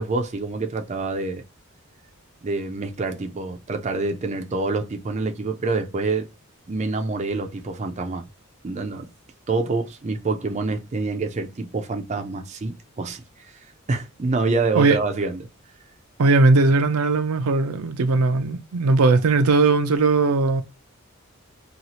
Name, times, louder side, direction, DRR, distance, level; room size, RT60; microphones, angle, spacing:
voice 1, 0.0-1.4 2.4-6.3 6.7-8.3 8.6-9.1 9.5-13.5 13.9-15.4, right 3 dB, 30° right, 0.4 m, -26 dB
voice 2, 16.2-20.6, right 3 dB, 85° right, 0.5 m, -18 dB
2.8 x 2.4 x 2.8 m
head